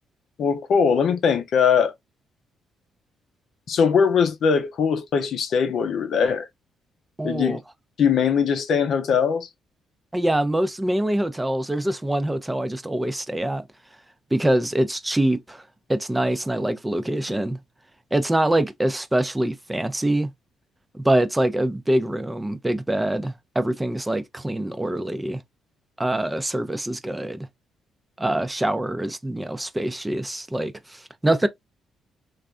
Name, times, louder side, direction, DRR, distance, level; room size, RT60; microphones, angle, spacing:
voice 1, 0.4-1.9 3.7-6.5 7.2-7.6 8.0-9.5, left 6 dB, 65° left, 0.6 m, -21 dB
voice 2, 7.2-7.6 10.1-13.7 14.3-17.6 18.1-20.3 20.9-25.4 26.0-27.5 28.2-31.5, right 1 dB, 10° right, 0.5 m, -24 dB
3.1 x 2.5 x 2.3 m
cardioid pair, 90°, 0 cm